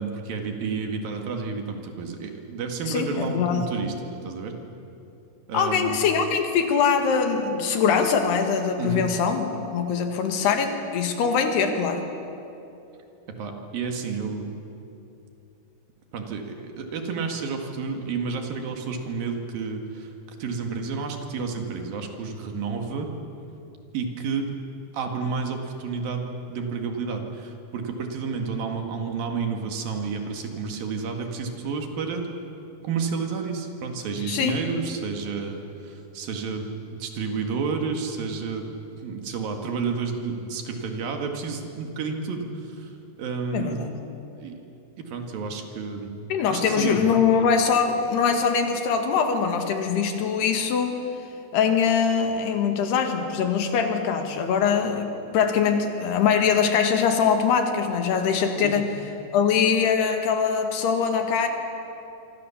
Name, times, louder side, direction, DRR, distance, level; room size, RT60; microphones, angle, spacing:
voice 1, 0.0-4.6 5.5-6.1 8.8-9.1 13.4-14.5 16.1-20.1 20.4-23.1 23.9-24.5 24.9-32.3 32.8-38.7 39.0-44.0 44.4-44.6 45.0-46.1 46.5-47.1 58.6-58.8, right 5 dB, 65° right, 3 dB, 3.6 m, -30 dB
voice 2, 2.9-3.7 5.5-9.5 9.7-12.0 34.3-34.6 43.5-43.9 46.3-51.0 51.5-58.9 59.3-61.5, left 6 dB, 85° left, 5 dB, 3.9 m, -22 dB
26.0 x 24.5 x 7.2 m, 2.8 s
omnidirectional pair, 4.6 m